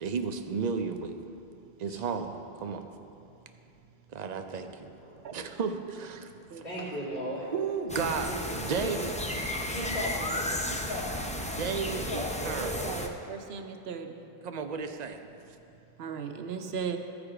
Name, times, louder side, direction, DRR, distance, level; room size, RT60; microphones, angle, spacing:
voice 1, 0.0-1.2 1.8-2.9 4.1-4.9 5.3-6.6 7.5-9.1 11.6-12.8 14.4-15.2, right 5 dB, 50° right, 7 dB, 0.5 m, -33 dB
voice 2, 6.6-7.5 8.2-8.4 8.8-9.0 9.7-11.5 11.9-12.6, equal, 55° left, -11 dB, 2.2 m, -37 dB
sound 1, 7.9-13.1, left 1 dB, 10° left, 0.4 m, -33 dB
voice 3, 12.6-14.2 16.0-17.0, right 6 dB, 70° right, 6 dB, 0.9 m, -37 dB
14.5 x 4.9 x 4.9 m, 2.8 s
omnidirectional pair, 1.1 m